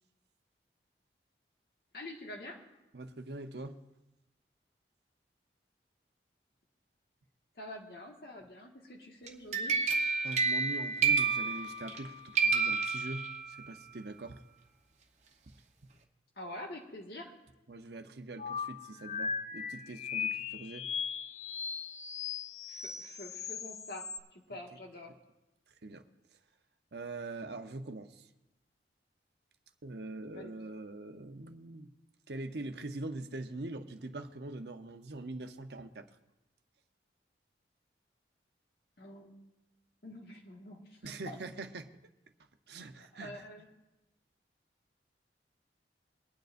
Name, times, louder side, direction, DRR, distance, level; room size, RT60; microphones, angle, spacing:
voice 1, 1.9-2.6 7.5-9.8 16.4-17.3 22.7-25.1 30.3-30.6 39.0-39.3 40.0-41.4 43.1-43.7, left 1 dB, 60° left, 0 dB, 1.7 m, -46 dB
voice 2, 2.9-3.8 10.2-14.4 17.7-20.9 24.5-24.6 25.8-26.0 26.9-28.3 29.8-31.9 32.3-36.1 41.0-41.9 42.7-43.4, right 2 dB, 70° right, 7 dB, 0.8 m, -43 dB
sound 1, 9.3-12.0 12.4-13.7, right 5 dB, 40° right, 0.9 m, -30 dB
sound 2, 18.4-24.2, left 6 dB, 40° left, 0.5 m, -38 dB
23.5 x 9.3 x 2.6 m, 0.97 s
head